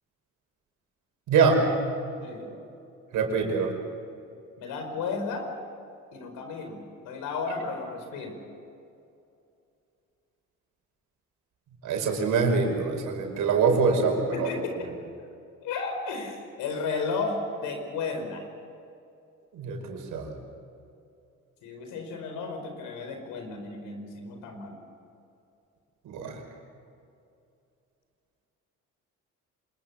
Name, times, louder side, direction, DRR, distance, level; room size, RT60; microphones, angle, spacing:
voice 1, 1.3-1.7 3.1-3.7 11.8-14.5 19.5-20.4 26.1-26.4, right 5 dB, 75° right, 3 dB, 5.5 m, -24 dB
voice 2, 4.6-5.5 6.1-6.8 7.0-8.4 14.3-14.9 15.6-18.5 21.6-24.8, left 4 dB, 85° left, 5 dB, 5.1 m, -33 dB
26.0 x 21.5 x 7.3 m, 2.6 s
cardioid pair, 90°, 31 cm